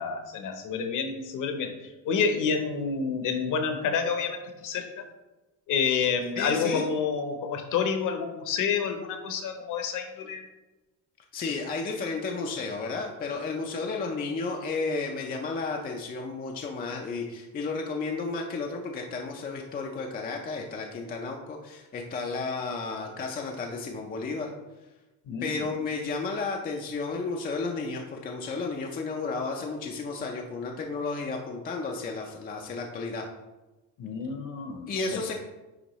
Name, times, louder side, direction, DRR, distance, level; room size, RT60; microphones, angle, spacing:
voice 1, 0.0-5.1 5.7-10.5 25.3-25.7 34.0-35.2, left 6 dB, 50° left, 6 dB, 0.9 m, -29 dB
voice 2, 6.4-6.9 11.3-24.5 25.4-33.2 34.9-35.3, left 4 dB, 25° left, 1 dB, 0.4 m, -32 dB
9.9 x 3.6 x 3.0 m, 1.1 s
cardioid pair, 155°, 41 cm